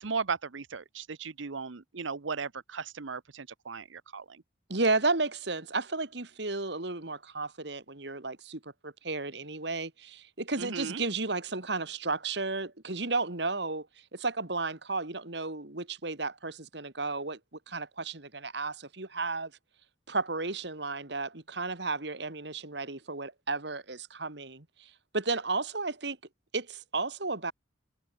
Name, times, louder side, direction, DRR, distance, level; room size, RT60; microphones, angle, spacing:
voice 1, 0.0-4.4 10.6-11.0, right 5 dB, 85° right, 0.9 m, -36 dB
voice 2, 4.7-13.9 14.1-17.4 17.7-19.5 20.1-26.2 26.5-27.5, right 3 dB, 65° right, 2.3 m, -33 dB
head